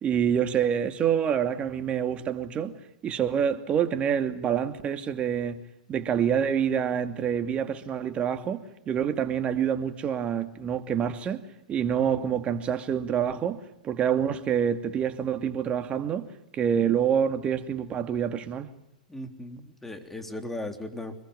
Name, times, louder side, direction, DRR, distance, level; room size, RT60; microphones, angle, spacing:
voice 1, 0.0-2.7 3.0-5.6 5.9-11.4 11.7-16.3 16.5-18.7, right 8 dB, 25° right, 2.5 m, -27 dB
voice 2, 19.1-21.2, left 1 dB, 5° left, 3.6 m, -37 dB
25.5 x 21.5 x 9.9 m
hypercardioid pair, 110°, 4 cm